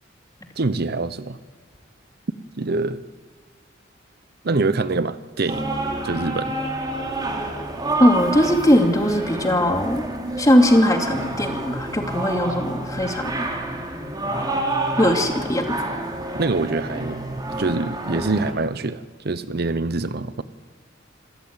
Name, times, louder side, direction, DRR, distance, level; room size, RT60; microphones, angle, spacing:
voice 1, 0.6-1.4 2.6-3.0 4.4-5.7 6.0-6.5 16.3-17.2 17.6-20.4, right 3 dB, 55° right, 13 dB, 0.8 m, -25 dB
sound 1, 5.5-18.5, right 2 dB, 20° right, 3.0 m, -28 dB
voice 2, 8.0-10.0 10.4-13.5 14.9-15.6, equal, 20° left, 4 dB, 2.7 m, -19 dB
27.5 x 14.5 x 8.9 m, 1.5 s
head